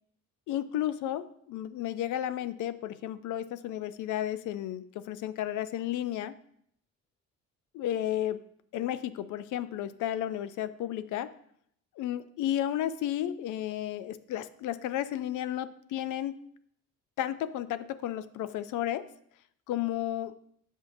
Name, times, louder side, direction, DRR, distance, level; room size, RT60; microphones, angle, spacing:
voice 1, 0.5-6.4 7.7-8.4 8.7-11.3 12.0-16.4 17.2-19.1 19.7-20.3, left 12 dB, 85° left, 13 dB, 0.5 m, -33 dB
8.0 x 5.9 x 2.6 m, 0.68 s
cardioid pair, 90°, 30 cm